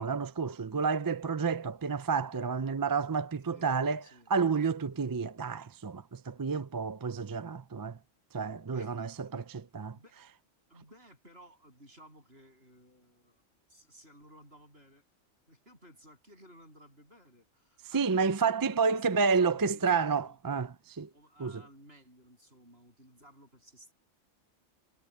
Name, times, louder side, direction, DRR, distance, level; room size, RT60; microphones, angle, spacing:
voice 1, 0.0-4.0 4.3-8.0 8.3-10.0 17.9-21.1 21.4-21.6, right 5 dB, 30° right, 0.4 m, -30 dB
voice 2, 4.0-4.7 8.7-9.5 9.9-10.2 10.7-13.4 13.7-15.1 15.5-20.4 21.1-23.9, equal, 60° right, 8.3 m, -57 dB
omnidirectional pair, 1.2 m